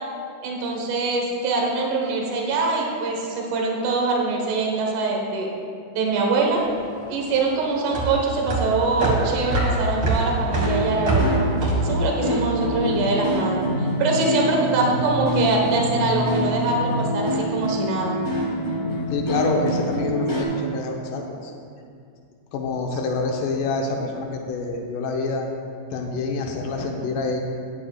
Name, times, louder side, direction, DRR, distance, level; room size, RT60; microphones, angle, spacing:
voice 1, 0.4-5.5 6.0-6.6 7.1-11.4 11.8-18.2, right 3 dB, 75° right, 0 dB, 2.6 m, -23 dB
sound 1, 6.6-13.1, right 2 dB, 45° right, 2.2 m, -24 dB
sound 2, 10.6-20.4, equal, 40° left, 0.6 m, -26 dB
voice 2, 19.1-21.5 22.5-25.5 25.9-27.4, left 3 dB, 85° left, 0 dB, 2.5 m, -26 dB
13.5 x 10.0 x 2.3 m, 2.3 s
omnidirectional pair, 3.6 m